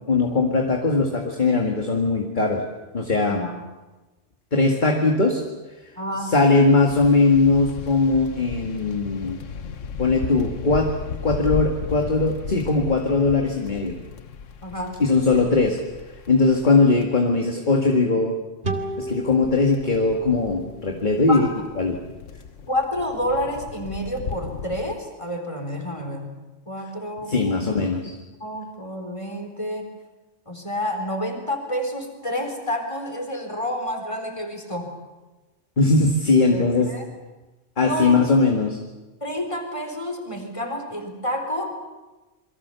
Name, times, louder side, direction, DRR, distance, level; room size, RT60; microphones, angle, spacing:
voice 1, 0.1-2.6 2.9-3.4 4.5-5.4 6.2-9.4 10.0-10.9 11.2-14.0 15.0-15.8 16.3-18.4 19.0-21.5 21.8-22.0 27.3-28.2 35.8-36.9 37.8-38.8, left 3 dB, 40° left, 2 dB, 2.1 m, -20 dB
voice 2, 3.3-3.6 6.0-6.3 14.6-14.9 21.3-21.5 22.7-26.3 26.7-29.9 30.5-35.0 36.5-37.1 37.8-38.2 39.2-41.7, equal, 25° left, 4 dB, 4.3 m, -29 dB
sound 1, 6.9-17.0 18.8-25.0, left 6 dB, 80° left, 1.3 m, -35 dB
sound 2, 18.6-22.0, right 2 dB, 50° right, 2.7 m, -34 dB
28.0 x 23.0 x 6.9 m, 1.1 s
omnidirectional pair, 1.3 m